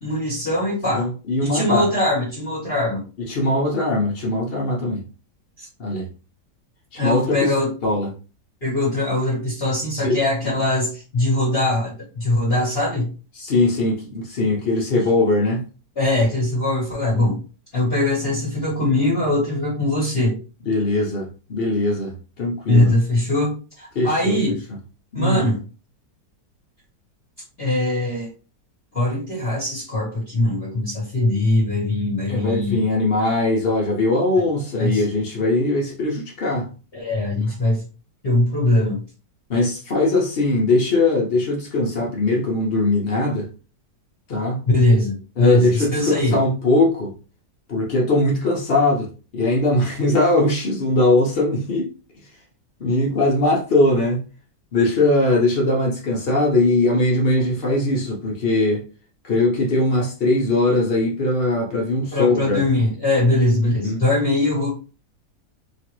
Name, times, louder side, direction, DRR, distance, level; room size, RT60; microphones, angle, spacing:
voice 1, 0.0-1.1 1.4-3.0 5.6-5.7 7.0-7.7 8.6-13.1 16.0-17.4 17.7-20.4 22.7-24.5 25.1-25.6 27.6-28.3 28.9-32.8 34.8-35.0 36.9-37.8 38.2-39.0 44.7-46.4 62.1-64.7, left 1 dB, 40° left, 1.2 m, -21 dB
voice 2, 0.9-1.9 3.3-5.0 5.8-6.1 6.9-7.5 7.8-8.1 10.0-10.2 10.4-10.5 13.4-15.6 20.7-22.9 23.9-24.6 25.1-25.4 32.3-36.7 37.4-37.5 39.5-43.5 44.3-44.6 45.4-47.1 47.7-51.9 52.8-54.2 54.7-58.8 59.2-62.6 63.5-64.0, left 2 dB, 80° left, 0.5 m, -20 dB
3.1 x 2.4 x 2.9 m
omnidirectional pair, 2.0 m